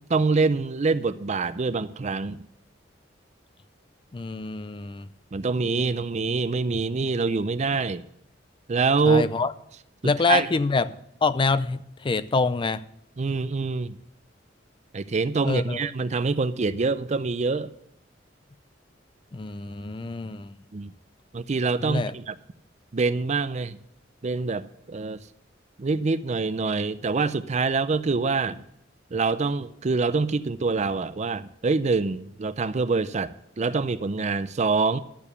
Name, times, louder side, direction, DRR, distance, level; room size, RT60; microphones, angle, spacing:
voice 1, 0.1-2.4 5.3-8.0 8.7-9.3 10.3-10.5 13.2-14.0 14.9-17.7 20.7-20.9 21.3-22.4 22.9-23.8 24.2-25.2 25.8-28.6 29.1-35.0, right 4 dB, 40° right, 0.5 m, -25 dB
voice 2, 4.1-5.1 9.1-9.5 10.0-10.9 11.2-12.8 15.4-15.8 19.3-20.6 21.8-22.1, left 4 dB, 25° left, 0.4 m, -26 dB
12.0 x 7.1 x 6.7 m
head